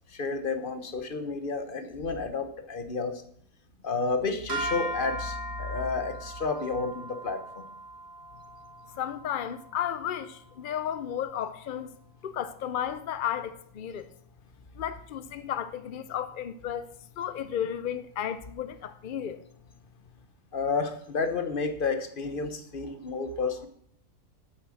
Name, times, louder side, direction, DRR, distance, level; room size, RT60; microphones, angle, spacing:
voice 1, 0.1-3.2 3.8-7.6 20.5-23.7, left 4 dB, 40° left, 1.1 m, -31 dB
sound 1, 4.5-10.8, right 1 dB, 45° right, 2.9 m, -38 dB
voice 2, 9.0-11.9 12.2-14.1 14.8-16.9 17.2-19.4, left 9 dB, 65° left, 0.5 m, -33 dB
8.7 x 8.5 x 6.3 m
omnidirectional pair, 1.5 m